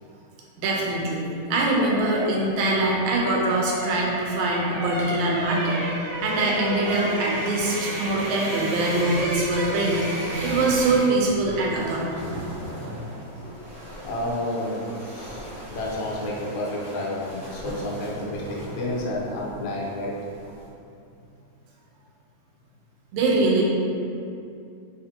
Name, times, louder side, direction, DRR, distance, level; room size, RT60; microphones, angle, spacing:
voice 1, 0.6-12.0 12.9-13.0 23.1-23.6, right 2 dB, 85° right, -3 dB, 2.0 m, -23 dB
sound 1, 1.3-11.3 11.5-11.7, equal, 65° right, 1.8 m, -32 dB
sound 2, 9.9-20.7, equal, 50° left, 0.8 m, -40 dB
voice 2, 13.2-13.5 13.9-20.2, left 1 dB, 85° left, -5 dB, 2.0 m, -31 dB
4.8 x 2.6 x 2.7 m, 2.5 s
omnidirectional pair, 3.3 m